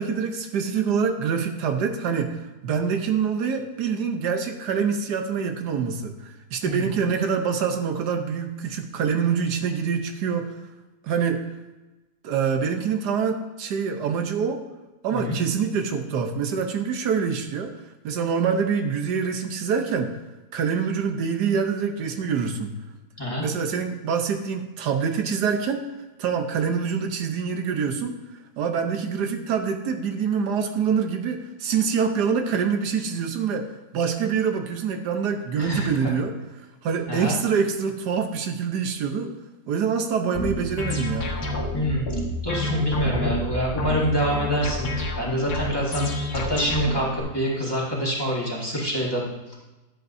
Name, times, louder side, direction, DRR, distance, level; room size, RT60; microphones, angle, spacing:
voice 1, 0.0-10.5 11.0-11.5 12.2-14.6 15.0-17.7 18.0-20.2 20.5-22.8 23.4-25.9 26.2-28.1 28.6-33.7 33.9-36.3 36.8-39.3 39.7-41.3, right 6 dB, 80° right, 5 dB, 1.4 m, -25 dB
voice 2, 35.6-36.1 37.1-37.3 41.7-42.1 42.4-49.3, equal, 15° left, -5 dB, 1.9 m, -26 dB
sound 1, 40.3-47.2, left 1 dB, 70° left, 2.1 m, -29 dB
11.5 x 8.0 x 2.7 m, 1.1 s
omnidirectional pair, 1.7 m